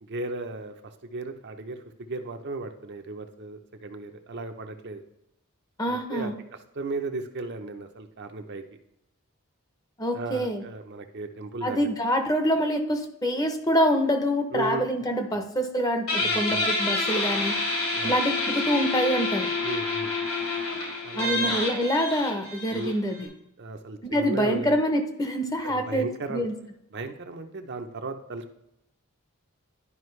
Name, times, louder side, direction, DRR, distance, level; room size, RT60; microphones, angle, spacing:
voice 1, 0.0-5.0 5.9-6.3 6.7-8.6 10.1-11.9 14.5-14.8 15.3-15.4 16.2-16.7 17.9-18.2 19.6-20.1 21.0-21.6 22.7-22.9 23.6-24.8 25.6-26.5 26.9-28.6, right 2 dB, 50° right, 6 dB, 0.7 m, -35 dB
voice 2, 5.8-6.3 10.0-10.6 11.6-17.6 18.0-19.5 21.1-23.3 24.0-26.5, equal, 15° left, 6 dB, 0.8 m, -26 dB
Guitar, 16.1-23.3, left 3 dB, 75° left, 3.1 m, -28 dB
11.0 x 5.0 x 3.2 m, 0.82 s
head